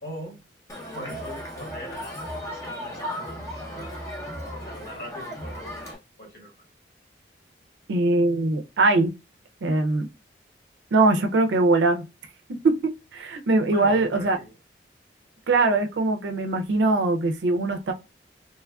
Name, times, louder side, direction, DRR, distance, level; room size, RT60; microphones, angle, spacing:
voice 1, 0.0-0.4 0.9-3.9 4.6-5.9 6.2-6.6 13.7-14.5, equal, 60° left, 1.5 m, -41 dB
Crowd, 0.7-5.9, equal, 20° left, 0.6 m, -35 dB
voice 2, 7.9-9.1 9.6-10.1 10.9-12.0 12.6-14.4 15.5-17.9, right 2 dB, 75° right, 0.4 m, -21 dB
3.1 x 2.3 x 2.2 m
head